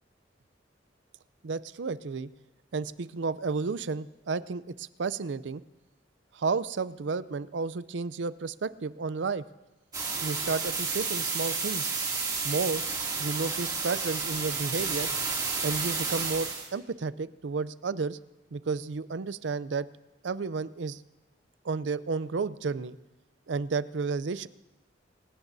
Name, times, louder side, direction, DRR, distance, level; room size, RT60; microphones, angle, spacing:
voice 1, 1.4-2.3 2.7-5.6 6.3-9.4 10.2-11.9 12.4-12.8 13.2-15.1 15.6-18.2 18.5-19.9 20.2-21.0 21.6-23.0 23.5-24.5, right 4 dB, 80° right, 16 dB, 0.5 m, -32 dB
sound 1, 9.9-16.7, right 4 dB, 20° right, 2.5 m, -31 dB
25.5 x 17.0 x 2.7 m, 1.0 s
head